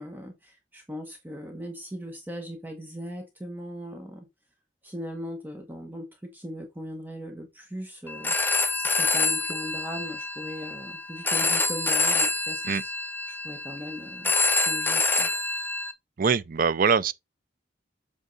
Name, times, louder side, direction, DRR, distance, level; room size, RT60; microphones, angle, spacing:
voice 1, 0.0-4.3 4.8-8.4 8.7-12.9 13.3-15.5, equal, 10° right, 1.1 m, -39 dB
Telephone, 8.1-15.9, left 3 dB, 10° left, 0.6 m, -26 dB
voice 2, 16.2-17.1, right 6 dB, 50° right, 0.5 m, -23 dB
8.2 x 3.6 x 3.9 m
head